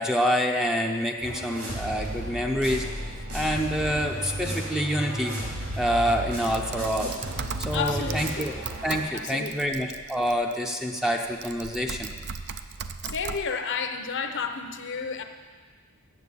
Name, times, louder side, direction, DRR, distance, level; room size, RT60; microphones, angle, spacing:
voice 1, 0.0-3.1 3.3-5.3 5.8-7.1 7.6-8.5 8.8-12.1, equal, ahead, 1 dB, 0.6 m, -27 dB
sound 1, 1.2-9.0, equal, 70° right, 3.8 m, -34 dB
Typing, 6.3-10.6 11.2-13.4, right 6 dB, 50° right, 0.4 m, -38 dB
voice 2, 7.7-8.5 9.1-9.7 13.1-15.2, left 5 dB, 55° left, 7 dB, 0.8 m, -31 dB
8.4 x 7.7 x 8.3 m, 1.5 s
head